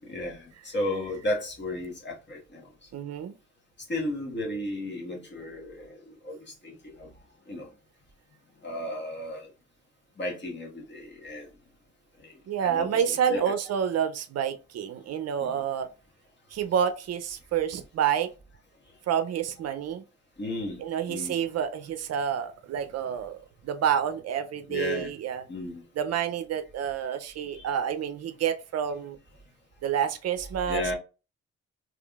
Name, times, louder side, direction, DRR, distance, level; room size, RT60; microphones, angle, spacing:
voice 1, 0.0-2.7 3.9-7.1 7.5-7.7 8.6-9.5 10.2-11.5 12.2-12.3 12.6-13.4 15.4-15.6 20.4-20.8 21.1-21.4 24.7-25.1 25.5-25.8 27.5-27.7 30.7-30.9, left 1 dB, 35° left, 1.4 m, -34 dB
voice 2, 2.9-3.3 12.5-15.9 16.5-18.3 19.1-20.0 20.8-23.4 23.6-25.4 26.0-29.2 29.8-30.9, right 8 dB, 55° right, 0.5 m, -28 dB
3.6 x 3.1 x 2.3 m
cardioid pair, 90°, 30 cm